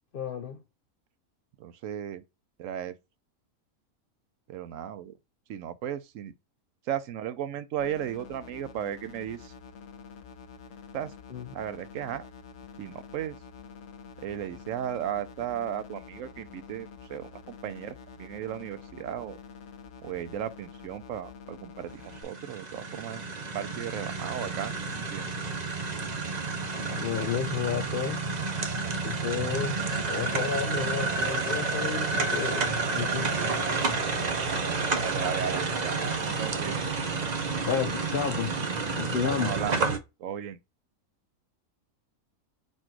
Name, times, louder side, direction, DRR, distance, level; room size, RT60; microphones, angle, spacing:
voice 1, 0.1-0.6 11.3-11.6 27.0-28.2 29.0-29.8 30.1-33.7 35.5-35.8 36.2-36.3 37.7-38.5 39.0-39.5, left 7 dB, 80° left, 0.5 m, -32 dB
voice 2, 1.6-2.2 2.6-3.0 4.5-5.2 5.5-6.3 6.9-9.5 10.9-11.1 11.5-12.3 12.8-13.4 14.2-17.3 17.6-19.4 20.0-23.2 23.5-25.3 35.0-36.8 39.3-39.8 40.2-40.6, right 10 dB, 70° right, 0.9 m, -35 dB
sound 1, 7.8-22.2, left 6 dB, 60° left, 0.9 m, -47 dB
sound 2, 22.0-40.0, right 4 dB, 40° right, 0.6 m, -30 dB
4.3 x 2.6 x 4.4 m
omnidirectional pair, 1.5 m